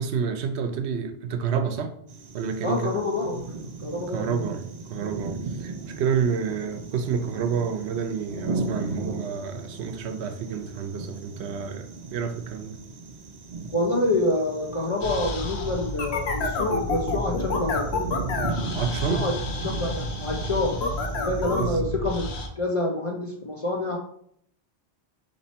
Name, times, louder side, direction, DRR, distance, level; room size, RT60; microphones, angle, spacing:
voice 1, 0.0-1.9 2.3-2.9 4.1-12.8 18.7-19.3 21.6-22.0, right 6 dB, 75° right, 0.9 m, -29 dB
sound 1, 2.1-21.8, right 3 dB, 50° right, 0.6 m, -37 dB
voice 2, 2.6-3.4 3.8-4.3 13.7-17.9 19.1-19.3 19.6-20.8 21.1-24.0, left 2 dB, 45° left, 0.4 m, -27 dB
sound 2, 15.0-22.5, left 1 dB, 75° left, 1.0 m, -29 dB
4.3 x 3.0 x 4.1 m
omnidirectional pair, 1.1 m